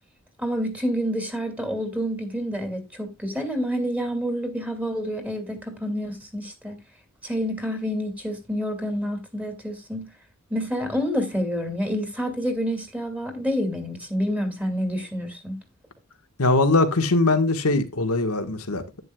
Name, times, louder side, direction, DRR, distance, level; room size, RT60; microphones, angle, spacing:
voice 1, 0.4-6.8 7.2-10.1 10.5-15.6, equal, 5° right, 2.4 m, -28 dB
voice 2, 16.4-19.0, left 2 dB, 90° left, 1.5 m, -21 dB
11.0 x 9.3 x 2.3 m
head